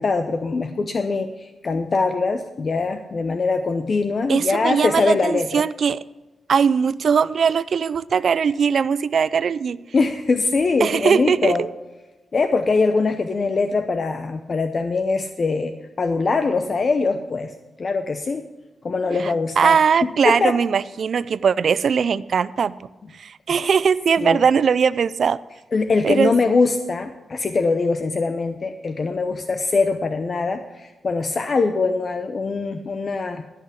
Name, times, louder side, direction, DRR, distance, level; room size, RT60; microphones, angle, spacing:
voice 1, 0.0-5.6 9.9-11.6 12.3-17.5 17.8-18.5 18.8-19.7 20.0-20.6 24.2-24.4 25.7-33.4, left 4 dB, 50° left, 8 dB, 0.7 m, -22 dB
voice 2, 4.3-6.0 6.5-9.8 10.8-11.7 19.2-22.9 23.2-25.4 26.0-26.3, right 6 dB, 65° right, 18 dB, 0.4 m, -20 dB
14.0 x 5.8 x 7.5 m, 1.2 s
cardioid pair, 80°, 0 cm